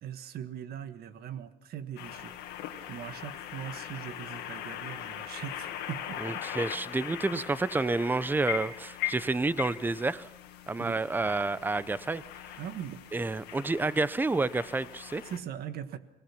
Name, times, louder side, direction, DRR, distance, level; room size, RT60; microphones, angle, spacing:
voice 1, 0.0-2.3 2.9-6.4 10.8-11.0 12.6-13.0 15.2-16.0, right 9 dB, 65° right, 11 dB, 1.4 m, -40 dB
sound 1, 2.0-15.4, left 11 dB, 80° left, 1.8 m, -40 dB
voice 2, 6.2-10.3 10.7-12.5 13.1-15.2, right 3 dB, 10° right, 16 dB, 0.7 m, -29 dB
24.0 x 18.5 x 5.8 m, 0.92 s
cardioid pair, 110°, 17 cm